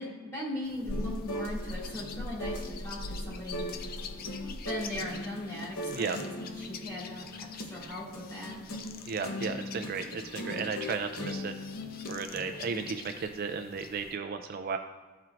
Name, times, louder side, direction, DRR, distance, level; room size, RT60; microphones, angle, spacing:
voice 1, 0.0-3.8 4.7-8.6, left 1 dB, 15° left, -7 dB, 2.3 m, -39 dB
sound 1, 0.6-14.1, left 2 dB, 45° left, 0.4 m, -43 dB
sound 2, 0.9-12.9, left 1 dB, 75° left, 0.9 m, -40 dB
voice 2, 5.9-6.2 9.1-11.5 12.1-14.8, right 5 dB, 45° right, 6 dB, 0.3 m, -34 dB
13.0 x 4.4 x 2.5 m, 1.4 s
head